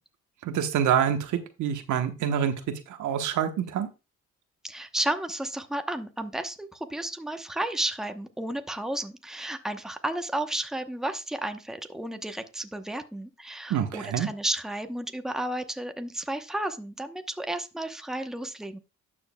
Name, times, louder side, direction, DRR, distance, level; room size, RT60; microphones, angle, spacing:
voice 1, 0.4-2.5 2.9-3.9 13.7-14.3, right 9 dB, 75° right, 1.2 m, -26 dB
voice 2, 4.6-18.8, right 1 dB, ahead, 0.9 m, -32 dB
12.0 x 7.1 x 2.3 m
cardioid pair, 90°, 30 cm